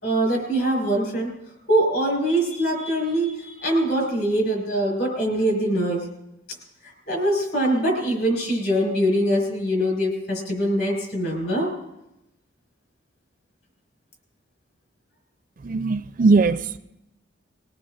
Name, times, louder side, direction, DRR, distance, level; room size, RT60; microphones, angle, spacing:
voice 1, 0.0-1.3 1.7-6.0 6.8-11.7, right 1 dB, 55° left, 0 dB, 4.5 m, -23 dB
voice 2, 15.6-16.8, right 3 dB, 45° right, 12 dB, 0.4 m, -20 dB
21.0 x 17.5 x 2.5 m, 0.86 s
head